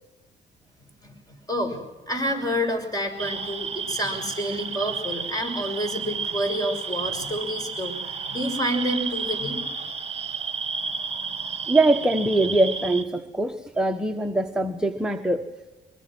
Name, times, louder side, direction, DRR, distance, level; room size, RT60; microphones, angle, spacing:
voice 1, 1.5-1.8 2.1-9.6, equal, 20° left, 6 dB, 6.1 m, -28 dB
sound 1, 3.2-13.0, right 5 dB, 30° right, 1.9 m, -32 dB
voice 2, 11.7-15.4, right 2 dB, 5° right, 4 dB, 1.2 m, -22 dB
23.5 x 22.0 x 6.2 m, 1.1 s
cardioid pair, 90°, 20 cm